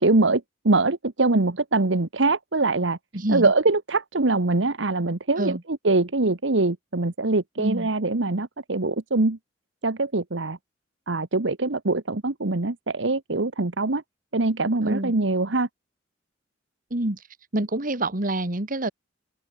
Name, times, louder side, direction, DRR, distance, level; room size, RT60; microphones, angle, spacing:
voice 1, 0.0-3.0 3.3-9.4 9.8-10.6 11.1-14.0 14.3-15.7, right 2 dB, 70° right, 1.3 m, -23 dB
voice 2, 3.1-3.5 5.4-5.6 7.6-7.9 14.8-15.1 16.9-17.2 17.5-18.9, right 1 dB, 45° right, 2.2 m, -26 dB
open air
head